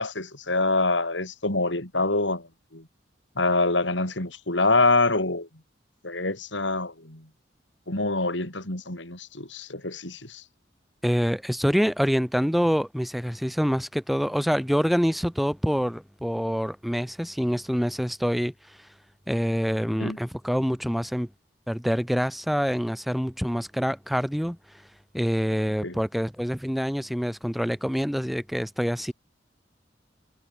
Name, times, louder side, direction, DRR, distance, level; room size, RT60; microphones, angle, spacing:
voice 1, 0.0-2.5 2.7-2.8 3.4-5.5 6.0-7.2 7.9-10.4 20.0-20.2 25.8-26.0, left 2 dB, 80° left, 6.8 m, -25 dB
voice 2, 11.0-18.5 19.3-21.3 21.7-24.6 25.1-29.1, equal, ahead, 5.3 m, -26 dB
head